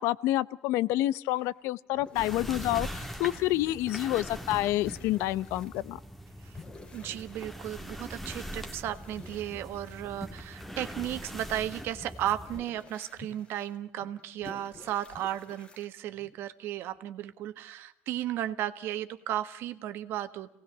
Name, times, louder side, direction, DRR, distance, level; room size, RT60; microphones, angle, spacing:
voice 1, 0.0-6.0, left 15 dB, 80° left, 18 dB, 0.8 m, -28 dB
sound 1, 1.4-1.6 1.9-3.9 4.2-5.8 6.5-8.0 8.5-16.4, left 3 dB, 20° left, 2.2 m, -52 dB
sound 2, 2.1-12.6, equal, ahead, 1.5 m, -42 dB
voice 2, 6.9-20.5, right 12 dB, 60° right, 10 dB, 1.5 m, -35 dB
28.0 x 18.5 x 7.3 m, 0.79 s
cardioid pair, 160°, 4 cm